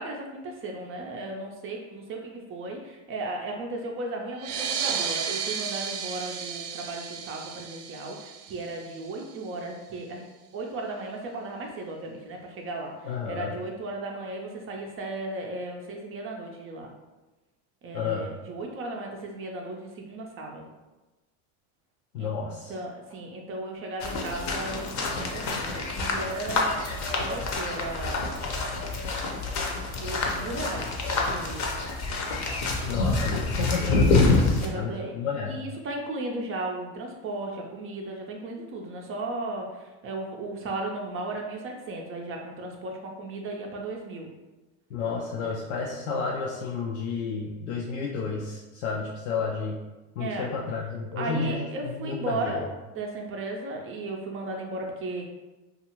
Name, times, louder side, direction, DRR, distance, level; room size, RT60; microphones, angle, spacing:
voice 1, 0.0-10.2 10.5-16.9 17.8-20.6 22.2-22.3 22.7-28.3 29.9-30.9 31.3-31.6 34.6-35.1 35.5-44.3 50.2-50.5 51.2-55.3, right 2 dB, 35° right, 1 dB, 0.4 m, -35 dB
sound 1, 4.3-9.5, right 7 dB, 85° right, 0.6 m, -33 dB
voice 2, 13.1-13.5 17.9-18.3 22.1-22.7 32.8-34.5 34.7-35.6 44.9-49.8 50.2-52.6, left 5 dB, 90° left, -4 dB, 0.5 m, -31 dB
sound 2, 24.0-34.7, left 3 dB, 40° left, 0.6 m, -27 dB
2.6 x 2.4 x 2.9 m, 1.1 s
hypercardioid pair, 95°, 43 cm